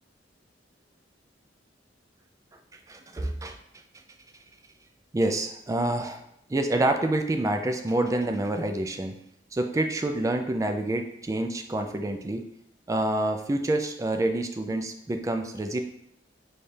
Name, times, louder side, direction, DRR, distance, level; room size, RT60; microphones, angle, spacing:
voice 1, 2.9-3.6 5.1-6.2 6.5-9.2 9.5-12.4 12.9-15.8, right 1 dB, 20° right, 6 dB, 0.3 m, -27 dB
3.3 x 2.4 x 4.2 m, 0.73 s
head